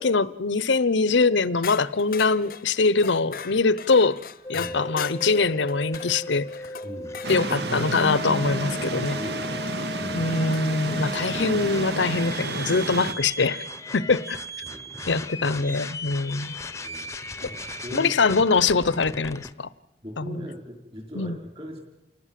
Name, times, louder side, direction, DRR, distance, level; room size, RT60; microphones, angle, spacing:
voice 1, 0.0-4.2 4.5-6.5 7.3-9.2 10.1-13.7 13.9-14.4 15.1-16.6 17.9-19.7 20.2-20.4 21.1-21.4, left 4 dB, 80° left, 0.8 m, -23 dB
sound 1, 1.6-7.5 9.5-9.6 10.5-11.0, left 7 dB, 50° left, 0.8 m, -39 dB
sound 2, 4.4-19.5, left 2 dB, 15° left, 0.9 m, -37 dB
voice 2, 6.8-7.2 8.6-9.7 9.9-10.3 11.3-11.5 14.6-15.3 16.8-17.1 17.4-18.4 20.0-21.8, equal, 30° right, 5.4 m, -40 dB
sound 3, 7.2-13.1, right 2 dB, 60° right, 1.4 m, -30 dB
28.5 x 19.5 x 7.6 m
head